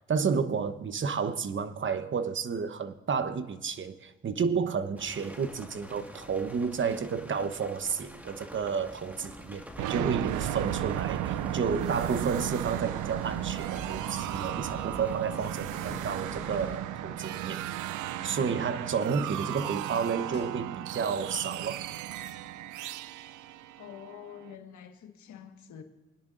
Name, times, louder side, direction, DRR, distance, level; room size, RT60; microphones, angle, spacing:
voice 1, 0.1-17.6 18.2-21.8, right 6 dB, 40° right, 0.9 m, -31 dB
sound 1, 4.9-16.8, equal, 5° right, 1.8 m, -46 dB
sound 2, 9.8-24.5, right 13 dB, 80° right, 0.5 m, -35 dB
sound 3, 14.7-19.7 20.1-20.6, left 4 dB, 35° left, 1.6 m, -52 dB
voice 2, 23.8-25.8, left 9 dB, 70° left, 1.6 m, -46 dB
21.5 x 10.5 x 2.6 m
cardioid pair, 90°, 30 cm